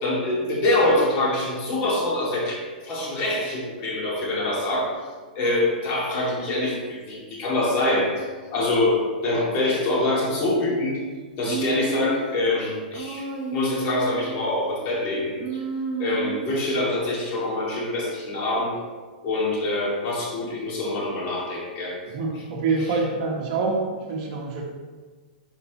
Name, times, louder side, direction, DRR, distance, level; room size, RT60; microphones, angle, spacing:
voice 1, 0.0-4.9 5.4-8.3 8.5-11.0 11.4-15.6 16.0-18.8 19.2-22.0, left 2 dB, 35° left, -4 dB, 2.3 m, -25 dB
Human voice, 11.4-12.4 12.9-14.5 15.4-16.6, right 4 dB, 25° right, 1.1 m, -31 dB
voice 2, 22.1-24.6, right 4 dB, 45° right, -1 dB, 1.5 m, -26 dB
11.5 x 4.4 x 3.0 m, 1.5 s
hypercardioid pair, 145°, 5 cm